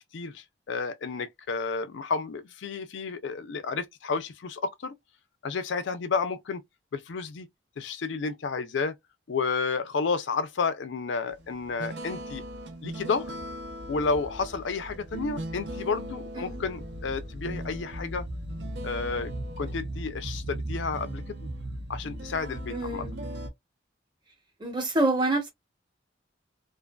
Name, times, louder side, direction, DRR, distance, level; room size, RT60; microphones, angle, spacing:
voice 1, 0.1-4.9 5.4-6.6 6.9-7.5 7.8-9.0 9.3-12.4 12.8-13.3 13.9-18.3 18.8-19.3 19.6-21.5 21.9-23.1, left 4 dB, 70° left, 0.4 m, -31 dB
sound 1, 11.3-23.5, right 1 dB, 65° right, 0.7 m, -37 dB
voice 2, 22.7-23.2 24.6-25.5, right 2 dB, 25° right, 0.8 m, -27 dB
2.4 x 2.4 x 2.2 m
head